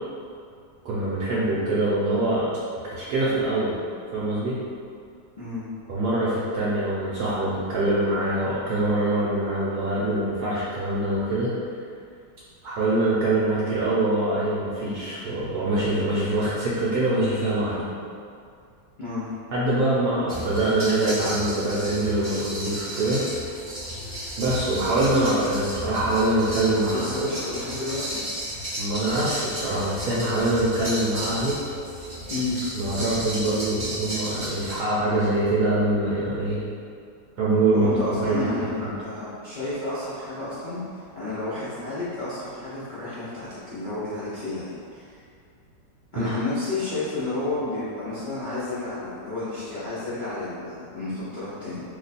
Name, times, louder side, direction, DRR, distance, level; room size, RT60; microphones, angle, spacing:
voice 1, 0.8-2.5 2.8-3.8 4.1-4.6 5.9-11.5 12.6-17.8 19.5-23.3 24.4-27.3 28.8-31.6 32.7-36.6 37.4-38.5 38.8-38.9 46.2-46.3, right 2 dB, 70° right, -9 dB, 1.1 m, -24 dB
voice 2, 5.4-5.7 19.0-19.3 26.7-28.2 32.3-32.6 37.7-45.1 46.1-51.8, left 2 dB, 85° left, -12 dB, 0.4 m, -31 dB
sound 1, 20.3-34.8, equal, 40° right, 0.4 m, -34 dB
2.9 x 2.2 x 4.0 m, 2.3 s
omnidirectional pair, 1.9 m